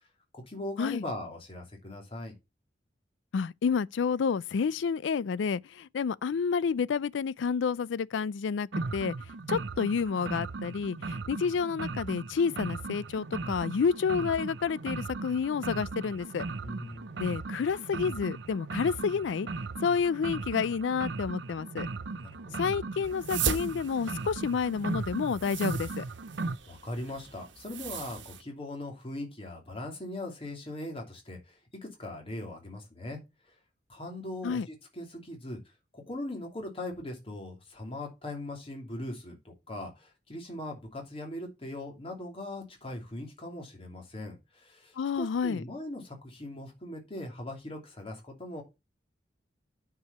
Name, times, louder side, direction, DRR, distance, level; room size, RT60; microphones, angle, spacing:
voice 1, 0.3-2.3 16.6-17.1 22.1-22.6 26.7-33.2 33.5-33.6 33.9-35.6 35.9-48.6, left 1 dB, 30° left, 2.9 m, -40 dB
voice 2, 3.3-9.2 9.5-16.4 17.2-19.5 19.8-21.9 22.6-26.1 34.4-34.7 45.0-45.6, left 6 dB, 80° left, 0.4 m, -29 dB
sound 1, 8.7-26.6, right 3 dB, 70° right, 0.6 m, -37 dB
sound 2, 23.0-28.4, right 7 dB, 85° right, 1.3 m, -38 dB
9.4 x 4.8 x 5.6 m
head